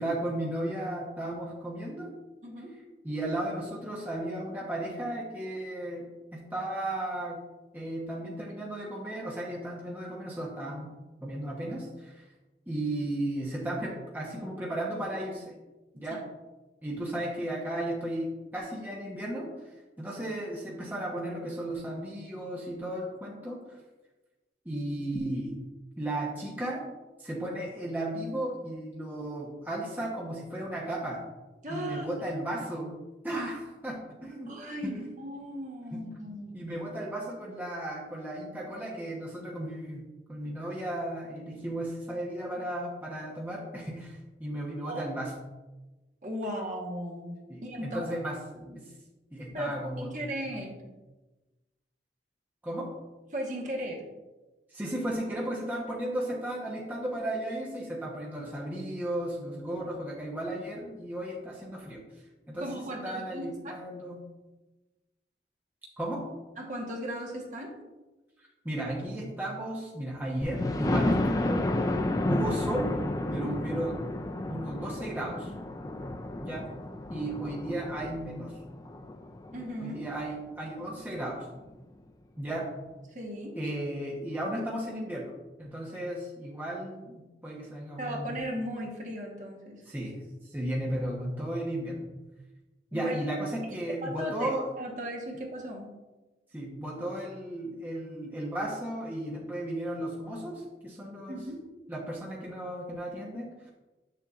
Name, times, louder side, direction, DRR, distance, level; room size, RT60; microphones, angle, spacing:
voice 1, 0.0-2.1 3.0-7.4 7.7-10.9 11.2-12.3 12.7-15.5 15.9-16.2 16.8-19.7 20.0-23.8 24.6-25.6 26.0-26.9 27.2-31.2 31.7-35.0 35.9-36.0 36.5-45.3 47.5-48.9 49.3-50.1 50.5-50.6 52.6-52.9 54.7-62.0 62.5-64.2 66.0-66.2 68.6-71.7 72.3-73.0 73.3-74.0 74.5-75.5 76.4-76.7 77.1-78.6 79.8-81.5 82.4-82.7 83.5-85.3 85.6-88.4 89.9-92.1 92.9-94.7 96.5-101.4 101.9-103.7, right 1 dB, 10° right, -5 dB, 1.0 m, -35 dB
voice 2, 2.4-2.8 31.6-32.1 34.5-36.5 44.8-45.0 46.2-47.3 47.6-48.1 49.5-50.7 53.3-54.1 62.6-63.8 66.6-67.8 79.5-80.0 83.1-83.6 88.0-89.8 92.9-93.1 94.0-94.5 94.8-95.9 101.3-101.6, equal, 45° right, -1 dB, 1.3 m, -36 dB
Thunder, 70.4-80.1 80.7-80.8 81.2-81.3 81.6-81.7, left 1 dB, 20° left, 0.3 m, -31 dB
7.8 x 6.8 x 2.5 m, 1.1 s
head